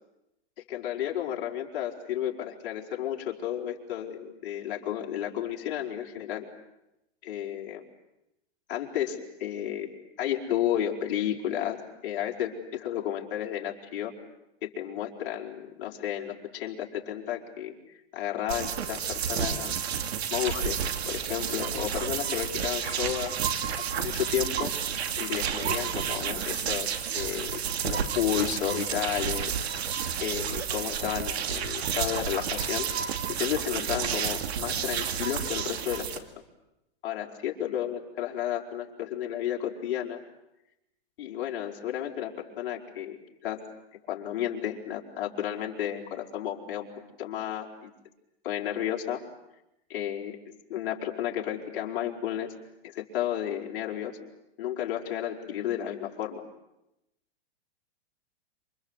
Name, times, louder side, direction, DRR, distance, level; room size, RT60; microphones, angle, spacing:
voice 1, 0.7-6.4 7.2-7.8 8.7-9.9 10.2-14.1 14.6-19.7 20.3-23.3 24.0-24.7 25.2-26.9 27.1-29.6 30.2-36.1 37.0-40.2 41.2-43.6 44.1-46.9 47.2-47.9 48.4-49.2 49.9-50.4 50.7-52.5 52.8-54.2 54.6-56.4, left 11 dB, 55° left, -1 dB, 4.8 m, -32 dB
sound 1, 18.5-36.2, right 8 dB, 75° right, 2.5 m, -31 dB
27.5 x 25.5 x 8.2 m, 0.89 s
hypercardioid pair, 150°, 32 cm